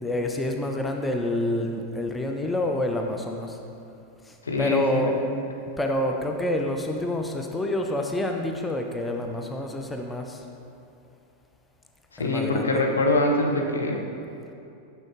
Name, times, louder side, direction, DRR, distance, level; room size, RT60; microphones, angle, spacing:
voice 1, 0.0-3.6 4.6-5.2 5.8-10.4 12.2-12.8, left 1 dB, 10° left, 3 dB, 0.5 m, -27 dB
voice 2, 4.5-5.1 12.1-14.0, left 2 dB, 70° left, 1 dB, 0.7 m, -24 dB
6.3 x 6.3 x 3.1 m, 2.6 s
figure-of-eight pair, 90°, 0 cm